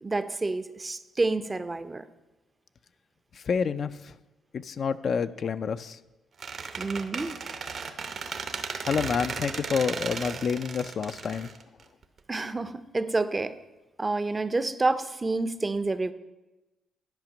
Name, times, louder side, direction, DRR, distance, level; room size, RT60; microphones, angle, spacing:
voice 1, 0.0-2.1 6.8-7.6 12.3-13.5 14.0-16.1, right 3 dB, 25° right, 12 dB, 0.5 m, -29 dB
voice 2, 3.5-4.1 4.5-6.0 8.8-11.5, left 6 dB, 50° left, 11 dB, 0.4 m, -28 dB
Squeak, 6.4-12.2, right 5 dB, 55° right, 0.8 m, -35 dB
10.5 x 5.0 x 6.1 m, 1.1 s
cardioid pair, 90°, 0 cm